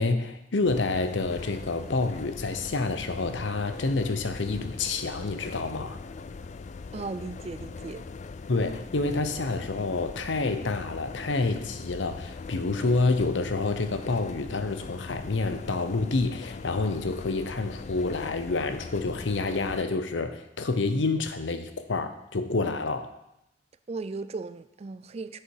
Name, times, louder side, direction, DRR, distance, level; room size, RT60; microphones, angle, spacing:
voice 1, 0.0-6.0 8.5-23.1, left 3 dB, 85° left, 9 dB, 0.8 m, -28 dB
sound 1, 0.7-19.8, left 4 dB, 40° left, 0.3 m, -41 dB
voice 2, 6.9-8.0 23.9-25.4, right 3 dB, 35° right, 12 dB, 0.4 m, -36 dB
8.1 x 6.7 x 4.7 m, 0.84 s
head